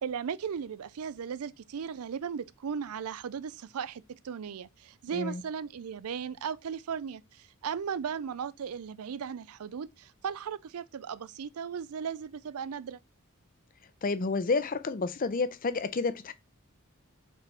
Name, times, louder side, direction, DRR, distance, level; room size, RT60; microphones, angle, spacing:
voice 1, 0.0-13.0, right 7 dB, 80° right, 0.4 m, -36 dB
voice 2, 14.0-16.3, left 3 dB, 40° left, 0.5 m, -30 dB
5.6 x 4.2 x 4.1 m
head